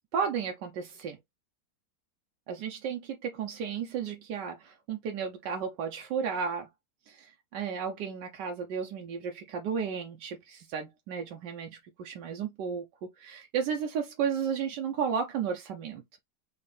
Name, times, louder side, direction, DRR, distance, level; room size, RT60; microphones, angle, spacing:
voice 1, 0.1-1.2 2.5-6.7 7.1-12.8 13.2-16.0, right 7 dB, 80° right, 1.3 m, -33 dB
4.3 x 2.9 x 3.3 m
omnidirectional pair, 1.9 m